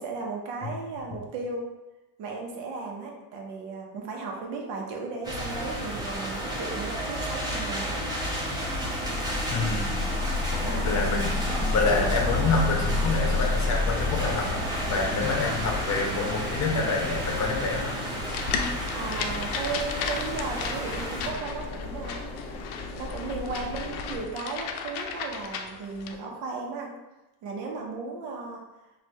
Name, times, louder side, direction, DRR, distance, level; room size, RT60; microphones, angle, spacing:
voice 1, 0.0-1.7 2.2-8.0 8.8-9.0 10.6-11.0 11.5-11.6 18.6-22.7 22.9-26.9 27.4-28.6, right 4 dB, 70° right, 0 dB, 1.1 m, -35 dB
sound 1, 5.2-21.3, left 1 dB, 10° right, 0.9 m, -30 dB
voice 2, 9.5-10.0 10.5-11.3 11.7-14.6 14.9-18.2, left 3 dB, 40° left, 1 dB, 0.9 m, -27 dB
sound 2, 12.3-24.3, left 3 dB, 15° left, 0.6 m, -39 dB
sound 3, 18.3-26.2, left 6 dB, 65° left, 0.6 m, -35 dB
4.4 x 2.7 x 3.2 m, 1.0 s
cardioid pair, 120°, 42 cm